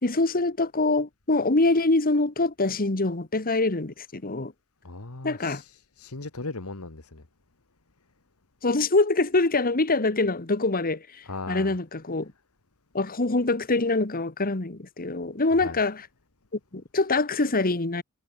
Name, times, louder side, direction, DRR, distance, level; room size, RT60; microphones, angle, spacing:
voice 1, 0.0-4.5 5.2-5.6 8.6-12.3 12.9-16.0 16.7-18.0, left 2 dB, 40° left, 1.6 m, -24 dB
voice 2, 4.8-7.2 11.2-11.7 15.5-15.8, left 3 dB, 75° left, 1.8 m, -38 dB
head